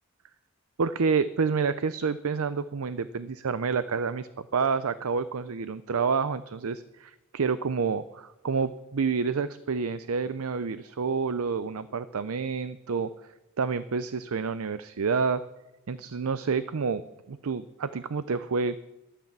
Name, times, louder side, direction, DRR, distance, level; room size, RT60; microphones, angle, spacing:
voice 1, 0.8-13.1 13.6-15.4 15.9-17.0 17.3-18.8, right 5 dB, 80° right, 13 dB, 0.6 m, -28 dB
13.5 x 12.0 x 7.4 m, 1.0 s
head